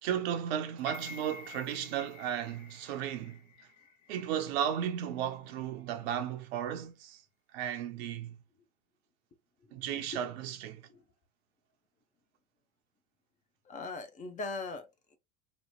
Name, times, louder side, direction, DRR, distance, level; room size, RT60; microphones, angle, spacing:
voice 1, 0.0-3.4 4.1-7.2 7.5-8.4 9.7-10.8, right 9 dB, 60° right, 0.7 m, -34 dB
sound 1, 0.8-4.9 5.3-5.4, left 5 dB, 75° left, 0.9 m, -50 dB
voice 2, 9.7-10.2 10.9-11.0 13.6-15.2, left 3 dB, 20° left, 0.5 m, -41 dB
3.0 x 2.1 x 3.0 m
hypercardioid pair, 90°, 35 cm